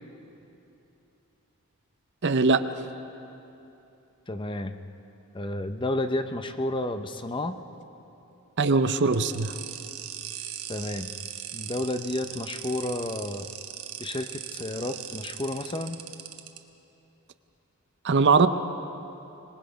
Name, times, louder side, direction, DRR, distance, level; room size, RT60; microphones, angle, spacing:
voice 1, 2.2-2.6 8.6-9.5 18.0-18.5, right 4 dB, 55° right, 11 dB, 0.7 m, -21 dB
voice 2, 4.3-4.7 5.3-7.6 10.7-11.1 11.5-13.5 14.0-16.0, left 1 dB, 20° left, 9 dB, 0.7 m, -31 dB
sound 1, 9.1-16.6, right 11 dB, 85° right, 1.2 m, -39 dB
25.5 x 20.0 x 5.2 m, 2.9 s
head